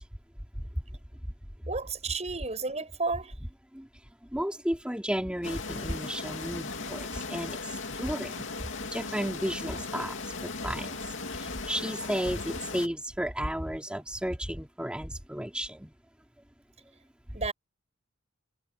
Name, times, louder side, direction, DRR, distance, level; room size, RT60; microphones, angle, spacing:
voice 1, 1.7-3.3 17.3-17.5, right 3 dB, 35° right, 6.4 m, -32 dB
voice 2, 4.3-8.5 8.9-15.9, equal, 5° right, 3.3 m, -33 dB
sound 1, 5.4-12.9, left 3 dB, 70° left, 2.9 m, -37 dB
head